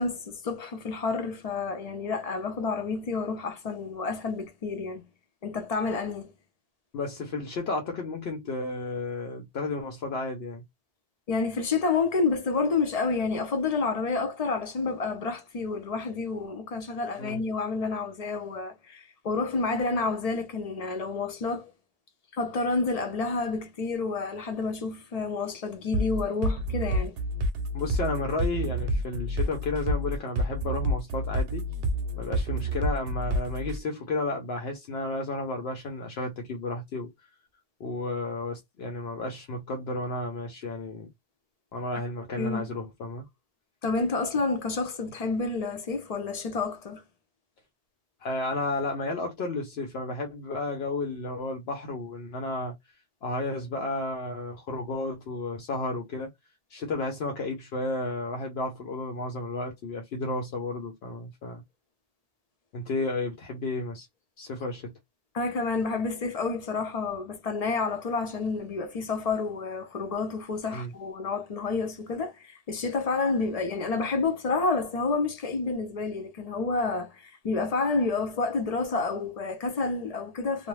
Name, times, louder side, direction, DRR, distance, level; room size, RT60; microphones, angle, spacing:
voice 1, 0.0-5.0 5.4-6.3 11.3-21.7 22.3-27.2 42.4-42.7 43.8-47.0 65.3-80.7, left 4 dB, 45° left, 0.5 m, -29 dB
voice 2, 6.9-10.6 17.2-17.4 27.7-31.7 32.2-37.1 37.8-41.1 41.7-43.3 48.2-52.7 53.2-56.3 56.7-61.6 62.7-64.1 64.4-64.9 70.7-70.9, left 2 dB, 75° left, 0.9 m, -32 dB
sound 1, 25.9-33.8, right 1 dB, 65° right, 0.8 m, -28 dB
2.6 x 2.0 x 3.1 m
omnidirectional pair, 1.1 m